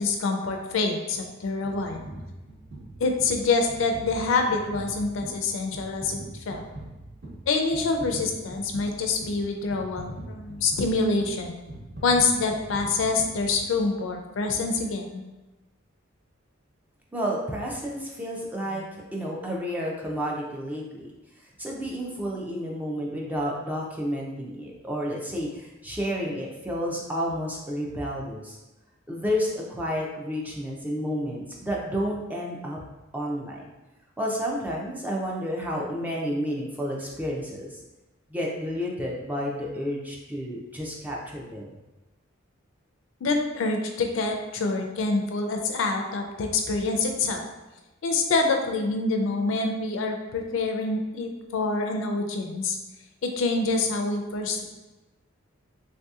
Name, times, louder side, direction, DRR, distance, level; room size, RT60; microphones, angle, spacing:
voice 1, 0.0-2.1 3.0-6.6 7.5-11.6 12.0-15.2 43.2-47.4 48.0-52.8 53.2-54.6, left 3 dB, 65° left, 3 dB, 0.4 m, -26 dB
sound 1, 1.6-14.0 14.6-14.7, right 1 dB, 55° right, 1.1 m, -42 dB
voice 2, 17.1-21.1 21.6-28.6 29.1-32.8 33.1-33.7 34.2-37.8 38.3-41.6, equal, 10° right, -3 dB, 0.4 m, -31 dB
3.3 x 2.7 x 2.3 m, 1.1 s
head